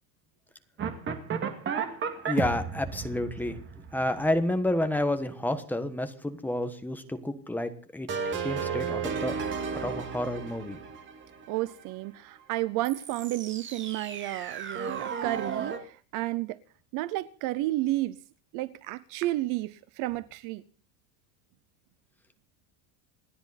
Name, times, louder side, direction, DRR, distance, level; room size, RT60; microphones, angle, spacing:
sound 1, 0.8-4.9 8.1-11.8 12.8-15.8, right 6 dB, 25° right, 2.2 m, -34 dB
voice 1, 2.2-3.6 3.9-8.1 8.4-9.4 9.8-10.8, left 1 dB, 5° left, 1.2 m, -30 dB
voice 2, 11.5-16.6 16.9-18.2 18.5-20.6, right 17 dB, 45° right, 0.7 m, -31 dB
28.0 x 10.0 x 4.1 m
cardioid pair, 180°, 46 cm